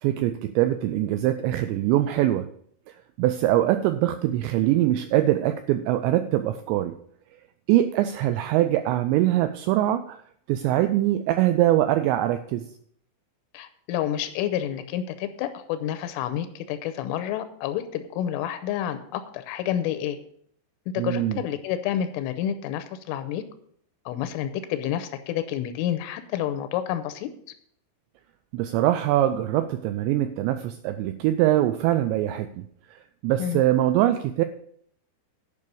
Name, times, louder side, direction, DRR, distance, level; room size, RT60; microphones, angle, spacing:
voice 1, 0.0-2.5 3.2-7.0 7.7-10.2 10.5-12.7 21.0-21.4 28.5-34.4, right 13 dB, 85° right, 10 dB, 2.6 m, -23 dB
voice 2, 13.5-20.2 20.9-23.4 24.1-27.3 33.4-33.6, left 11 dB, 85° left, 10 dB, 3.3 m, -29 dB
11.0 x 5.4 x 6.9 m, 0.65 s
omnidirectional pair, 5.7 m